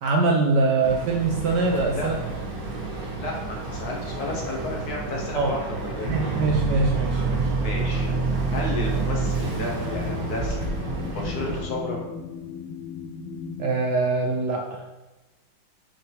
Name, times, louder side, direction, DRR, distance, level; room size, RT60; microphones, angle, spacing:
voice 1, 0.0-2.2 5.3-5.5 6.1-7.5 13.6-14.8, right 3 dB, 70° right, 1 dB, 1.1 m, -23 dB
Boat Water vehicle, 0.8-11.6, right 3 dB, 35° right, 1.0 m, -28 dB
voice 2, 3.1-6.1 7.6-8.1 8.5-10.6 11.1-12.0, left 2 dB, 50° left, -1 dB, 1.6 m, -32 dB
sound 1, 7.9-13.8, left 6 dB, 85° left, 1.6 m, -37 dB
7.3 x 5.6 x 3.5 m, 1.1 s
omnidirectional pair, 2.3 m